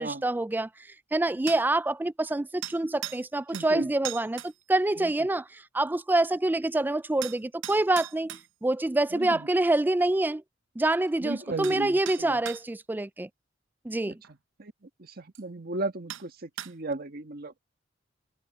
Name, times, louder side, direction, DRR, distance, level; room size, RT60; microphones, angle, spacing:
voice 1, 0.0-10.4 10.8-13.3 13.8-14.2, right 2 dB, 10° right, 0.3 m, -26 dB
sound 1, 1.5-1.7 2.6-3.2 3.5-3.7 4.0-4.5 7.2-8.5 11.1-11.2 11.6-11.8 12.1-12.6 14.2-14.3 15.3-15.4 16.1-16.3 16.6-16.9, right 12 dB, 75° right, 0.8 m, -38 dB
voice 2, 3.5-3.9 5.0-5.1 9.1-9.5 11.2-12.4 14.1-14.2 14.6-14.7 15.0-17.6, right 2 dB, 50° right, 1.6 m, -35 dB
head